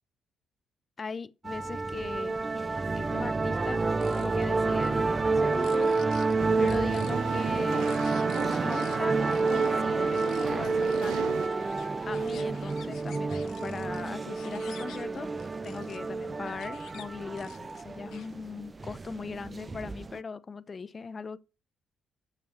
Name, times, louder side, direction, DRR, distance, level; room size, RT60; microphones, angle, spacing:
voice 1, 1.0-2.3 2.9-3.9 4.1-5.9 6.6-7.9 8.6-11.4 12.1-15.3 15.6-21.4, left 5 dB, 35° left, 0.7 m, -39 dB
sound 1, 1.5-20.2, right 3 dB, 25° right, 0.5 m, -29 dB
sound 2, 3.8-4.5 4.8-4.9 5.4-6.3 6.7-9.0 9.3-9.7 10.1-10.5 10.8-16.0 16.5-17.0 17.4-18.4, left 10 dB, 80° left, 1.0 m, -51 dB
sound 3, 6.4-11.5, right 10 dB, 85° right, 0.6 m, -37 dB
6.6 x 6.3 x 7.0 m
cardioid pair, 90°, 0 cm